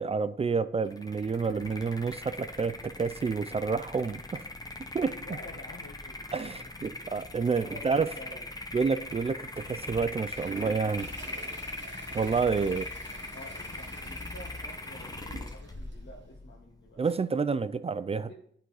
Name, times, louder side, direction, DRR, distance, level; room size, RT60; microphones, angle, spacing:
voice 1, 0.0-4.4 4.9-5.2 6.3-8.1 8.7-11.1 12.1-12.9 17.0-18.3, right 5 dB, 30° right, 0.4 m, -29 dB
sound 1, 0.9-17.2, left 2 dB, 20° left, 0.7 m, -41 dB
voice 2, 5.1-7.2 7.5-8.5 12.7-12.9 13.3-17.0 18.3-18.4, left 1 dB, 75° left, 1.2 m, -49 dB
Toilet flush, 10.2-16.0, right 6 dB, 70° right, 0.9 m, -49 dB
11.0 x 3.9 x 4.8 m
wide cardioid pair, 85°, 20 cm